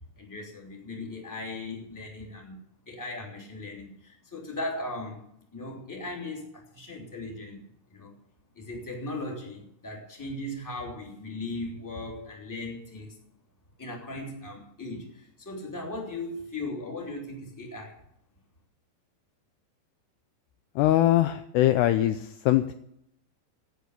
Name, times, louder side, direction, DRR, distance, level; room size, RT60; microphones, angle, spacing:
voice 1, 0.2-5.2 5.5-7.6 7.9-8.1 8.5-13.2 13.8-18.0, left 2 dB, 5° left, 2.2 m, -38 dB
voice 2, 20.8-22.7, left 14 dB, 80° left, 2.5 m, -22 dB
16.5 x 7.0 x 8.2 m
omnidirectional pair, 5.3 m